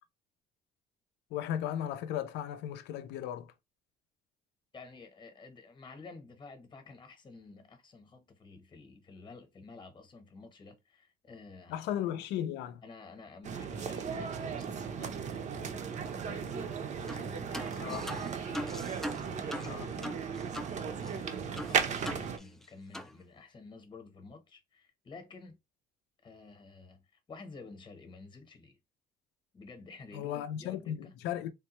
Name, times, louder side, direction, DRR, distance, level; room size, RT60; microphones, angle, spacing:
voice 1, 1.3-3.5 11.7-12.8 17.8-18.0 19.6-19.9 30.1-31.5, left 10 dB, 85° left, 0.5 m, -36 dB
voice 2, 4.7-11.8 12.8-16.7 17.0-18.6 18.9-20.6 20.8-25.6 26.2-28.8 29.5-31.1, left 3 dB, 25° left, 0.9 m, -51 dB
sound 1, 13.4-22.4, right 6 dB, 45° right, 0.6 m, -36 dB
sound 2, 17.1-17.3 17.5-20.7 21.0-21.1 21.6-22.7 22.9-23.1, left 1 dB, ahead, 0.3 m, -41 dB
3.6 x 2.2 x 2.9 m
cardioid pair, 110°, 17 cm